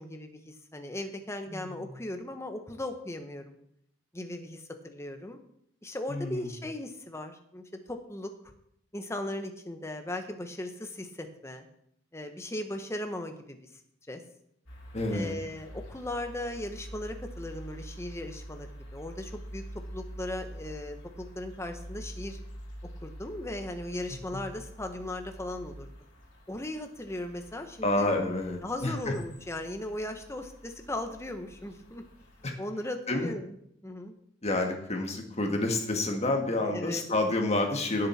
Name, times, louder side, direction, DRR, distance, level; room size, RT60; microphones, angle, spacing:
voice 1, 0.0-3.6 4.1-5.4 5.8-8.5 8.9-11.7 12.1-13.6 14.1-14.2 15.1-22.4 23.0-25.9 26.5-28.1 28.6-32.0 32.6-33.5 33.8-34.1 36.6-37.0, left 1 dB, 15° left, 6 dB, 1.1 m, -38 dB
voice 2, 6.1-6.5 14.9-15.3 24.3-24.4 27.8-29.1 32.4-32.5 33.1-33.3 34.4-38.1, left 2 dB, 35° left, 3 dB, 1.5 m, -29 dB
sound 1, 14.7-32.5, equal, 70° left, 3.6 m, -46 dB
16.0 x 7.4 x 4.3 m, 0.71 s
head